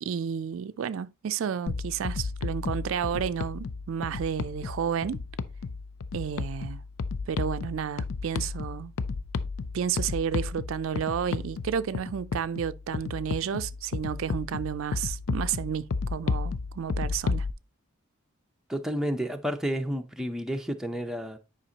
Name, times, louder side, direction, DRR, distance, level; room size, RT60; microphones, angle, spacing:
voice 1, 0.0-5.2 6.1-6.8 7.3-8.9 9.7-17.5, right 8 dB, 70° right, 0.4 m, -31 dB
sound 1, 1.7-17.5, left 4 dB, 75° left, 0.5 m, -33 dB
voice 2, 18.7-21.4, equal, ahead, 0.5 m, -31 dB
9.8 x 5.0 x 2.8 m
head